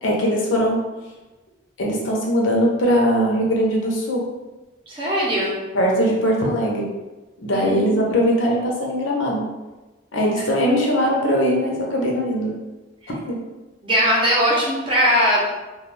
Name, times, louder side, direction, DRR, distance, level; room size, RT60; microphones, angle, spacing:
voice 1, 0.0-0.8 1.8-4.2 5.7-6.9 7.4-9.4 10.1-12.5 13.3-13.4, equal, 80° left, -2 dB, 0.6 m, -20 dB
voice 2, 4.9-5.6 7.5-8.1 13.8-15.5, equal, 25° right, -5 dB, 0.6 m, -20 dB
2.3 x 2.2 x 3.2 m, 1.1 s
head